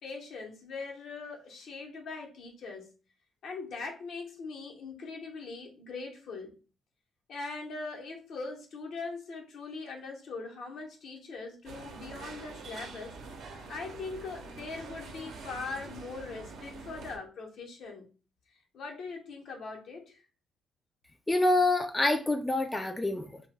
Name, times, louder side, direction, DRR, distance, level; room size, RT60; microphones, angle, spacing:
voice 1, 0.0-2.9 3.4-6.5 7.3-13.1 13.5-18.1 18.7-20.2, left 4 dB, 70° left, 1 dB, 0.8 m, -41 dB
sound 1, 11.6-17.2, right 3 dB, 75° right, 0.7 m, -45 dB
voice 2, 21.3-23.4, left 2 dB, 15° left, 5 dB, 0.3 m, -26 dB
2.8 x 2.2 x 3.2 m, 0.35 s
cardioid pair, 90°, 0 cm